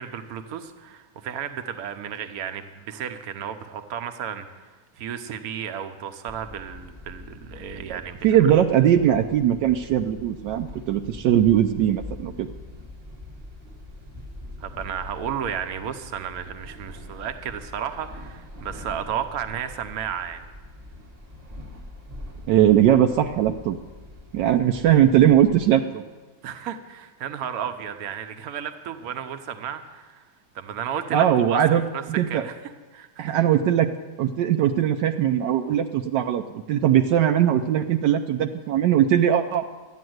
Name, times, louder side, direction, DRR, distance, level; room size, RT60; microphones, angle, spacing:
voice 1, 0.0-8.5 14.6-20.4 26.4-30.2 30.5-33.4, right 8 dB, 60° right, 8 dB, 1.2 m, -33 dB
sound 1, 6.3-25.7, left 1 dB, 25° right, 1.1 m, -43 dB
voice 2, 8.2-12.5 22.5-23.8 24.3-26.0 31.1-31.8 32.2-32.4 33.2-33.9 34.2-39.6, right 10 dB, 80° right, 6 dB, 1.2 m, -20 dB
13.0 x 9.5 x 7.8 m, 1.3 s
omnidirectional pair, 1.9 m